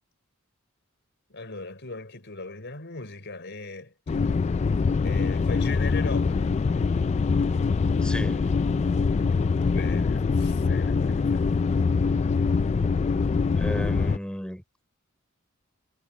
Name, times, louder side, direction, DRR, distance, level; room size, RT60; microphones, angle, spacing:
voice 1, 1.3-4.4 5.0-6.5 9.5-11.5, left 3 dB, 55° left, 4.6 m, -39 dB
sound 1, 4.1-14.2, left 4 dB, 30° left, 0.3 m, -24 dB
voice 2, 8.0-8.5 13.6-14.6, equal, 5° left, 3.3 m, -33 dB
head